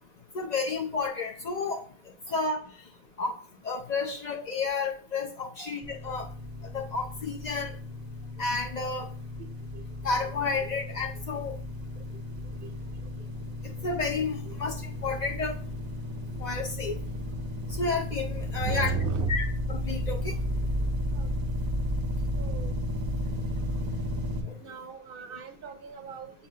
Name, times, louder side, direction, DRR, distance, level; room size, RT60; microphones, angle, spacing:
voice 1, 0.3-1.8 2.3-2.6 3.2-3.3 3.6-6.3 6.7-7.7 8.4-9.1 10.0-11.5 13.8-15.5 16.4-17.0 17.7-18.9 19.3-20.3 24.5-24.6, left 4 dB, 55° left, 2 dB, 0.5 m, -31 dB
sound 1, 5.8-24.4, left 1 dB, 30° right, 0.4 m, -33 dB
voice 2, 18.6-19.4 21.2-21.3 22.4-22.8 24.6-26.3, right 5 dB, 65° right, 8 dB, 0.7 m, -34 dB
7.0 x 2.8 x 2.7 m, 0.42 s
omnidirectional pair, 1.0 m